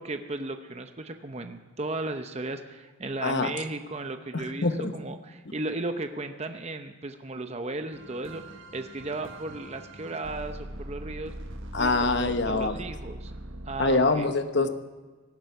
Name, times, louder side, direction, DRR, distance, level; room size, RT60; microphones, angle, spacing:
voice 1, 0.0-11.3 11.7-13.3 13.6-14.3, right 2 dB, 30° right, 7 dB, 0.7 m, -35 dB
voice 2, 3.2-3.5 4.3-4.9 11.7-12.8 13.8-14.7, left 3 dB, 55° left, 9 dB, 1.0 m, -25 dB
sound 1, 7.9-14.0, right 1 dB, 75° right, 1.2 m, -41 dB
18.0 x 11.0 x 5.8 m, 1.3 s
head